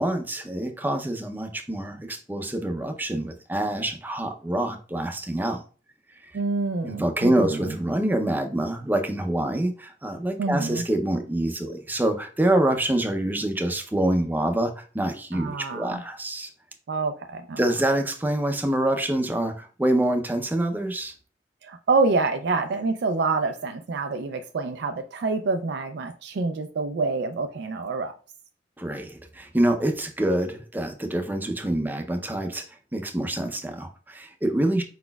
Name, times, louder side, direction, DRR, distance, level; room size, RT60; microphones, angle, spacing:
voice 1, 0.0-5.6 6.2-6.3 6.8-16.5 17.6-21.1 28.8-32.7 32.9-34.8, right 1 dB, 10° right, 0.5 m, -26 dB
voice 2, 6.3-7.6 10.4-10.8 15.3-16.0 16.9-17.6 21.6-28.1, right 3 dB, 65° right, 0.4 m, -27 dB
4.9 x 4.1 x 2.2 m
head